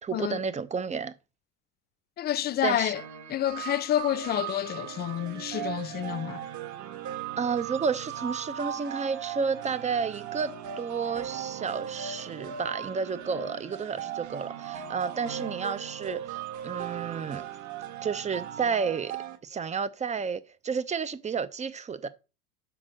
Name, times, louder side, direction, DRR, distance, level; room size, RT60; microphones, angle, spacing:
voice 1, 0.0-1.1 2.6-2.9 7.4-17.4 18.0-19.1 19.4-22.1, right 5 dB, 15° right, 0.8 m, -31 dB
voice 2, 2.2-3.0 3.3-6.4, left 12 dB, 20° left, 0.5 m, -29 dB
sound 1, 2.9-19.4, right 9 dB, 40° right, 1.5 m, -38 dB
sound 2, 4.4-18.6, right 12 dB, 60° right, 2.1 m, -47 dB
6.0 x 6.0 x 6.5 m
hypercardioid pair, 95°, 45 cm